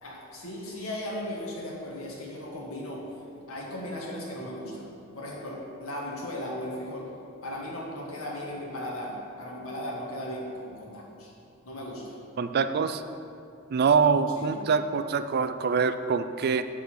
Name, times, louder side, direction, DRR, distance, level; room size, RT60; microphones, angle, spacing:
voice 1, 0.0-3.1 3.5-4.9 5.1-7.1 7.4-11.3 11.6-12.1 14.3-14.7, left 1 dB, 80° left, -3 dB, 1.9 m, -37 dB
voice 2, 12.4-13.0 13.7-16.6, right 5 dB, 50° right, 10 dB, 0.4 m, -24 dB
7.0 x 6.6 x 6.2 m, 2.6 s
head